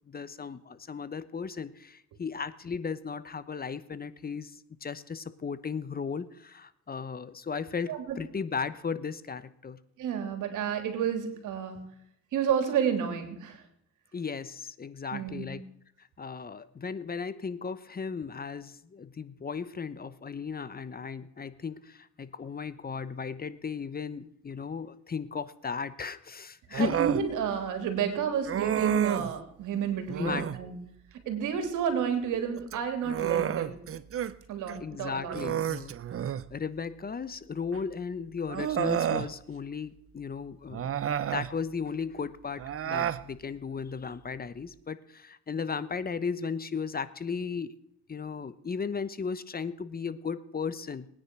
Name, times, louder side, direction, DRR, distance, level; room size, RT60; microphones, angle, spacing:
voice 1, 0.1-9.8 14.1-15.6 16.0-27.0 30.2-30.5 34.8-35.9 36.5-40.9 41.3-47.7 48.1-51.1, left 5 dB, 30° left, 15 dB, 1.0 m, -36 dB
voice 2, 10.0-11.8 12.3-13.6 15.1-15.6 26.8-30.8 31.2-33.8 34.5-35.4, right 7 dB, 85° right, 7 dB, 3.1 m, -30 dB
Human voice, 26.7-27.2 28.5-29.4 30.1-30.6 32.6-34.3 34.7-34.8 35.3-36.5 37.7-37.8 38.5-39.3 40.7-41.5 42.6-43.2, right 9 dB, 45° right, 0.8 m, -30 dB
20.0 x 9.8 x 6.1 m, 0.75 s
cardioid pair, 90°, 30 cm